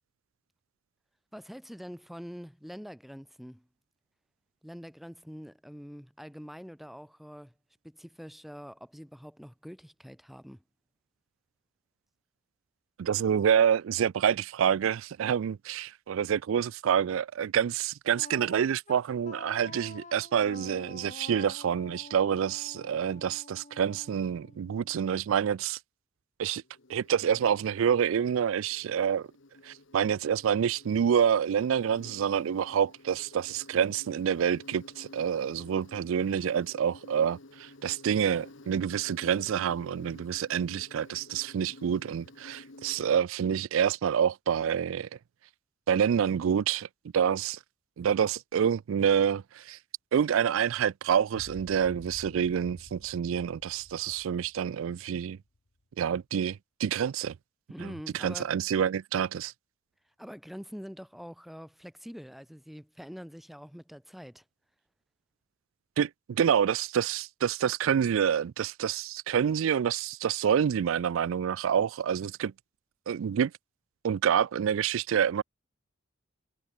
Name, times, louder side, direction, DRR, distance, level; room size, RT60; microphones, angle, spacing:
voice 1, 1.3-3.7 4.6-7.5 7.8-10.6 57.7-58.5 60.2-64.4, equal, ahead, 6.1 m, -45 dB
voice 2, 13.0-25.8 26.4-26.6 26.9-29.3 29.6-45.1 45.9-46.9 47.1-47.6 48.0-49.8 50.1-55.4 56.0-57.4 57.8-59.5 66.0-72.5 73.1-73.5 74.0-75.4, right 8 dB, 70° right, 0.3 m, -27 dB
Wind instrument woodwind instrument, 18.1-25.1, left 3 dB, 35° left, 1.7 m, -48 dB
Insect, 26.5-43.2, left 2 dB, 60° left, 1.3 m, -52 dB
sound 1, 51.3-55.7, left 1 dB, 80° left, 1.8 m, -51 dB
head